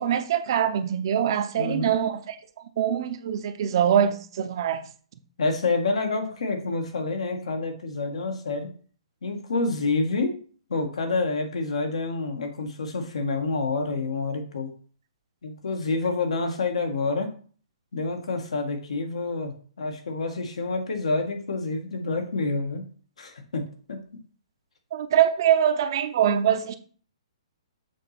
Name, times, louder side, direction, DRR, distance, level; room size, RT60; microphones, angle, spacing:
voice 1, 0.0-2.4 2.8-4.9 24.9-26.8, right 9 dB, 45° right, 0.6 m, -23 dB
voice 2, 1.5-1.9 5.4-8.7 9.2-10.4 10.7-14.7 15.4-17.3 17.9-22.8 23.2-24.0, left 3 dB, 80° left, 1.5 m, -28 dB
7.0 x 2.9 x 5.8 m
hypercardioid pair, 160°, 3 cm